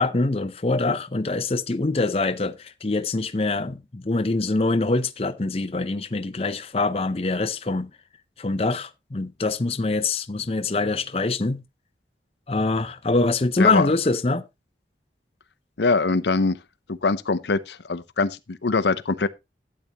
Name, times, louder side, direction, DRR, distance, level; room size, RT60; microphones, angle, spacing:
voice 1, 0.0-7.9 8.4-11.6 12.5-14.4, left 3 dB, 35° left, 0.6 m, -24 dB
voice 2, 15.8-16.6 16.9-19.3, left 4 dB, 75° left, 0.7 m, -23 dB
12.5 x 8.6 x 3.0 m
head